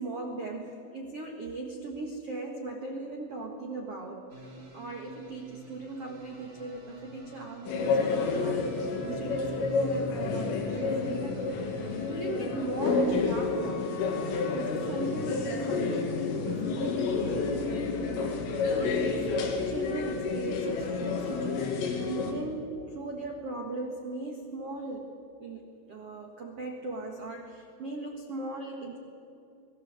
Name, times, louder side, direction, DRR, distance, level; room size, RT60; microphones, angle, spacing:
voice 1, 0.0-8.7 9.0-11.4 12.1-17.5 18.2-25.1 25.4-29.0, right 2 dB, 85° right, 2 dB, 1.3 m, -38 dB
sound 1, 4.3-13.3, equal, 30° right, 2.0 m, -46 dB
sound 2, 7.7-22.3, left 4 dB, 75° left, 5.0 m, -30 dB
26.5 x 20.5 x 8.1 m, 2.6 s
omnidirectional pair, 5.9 m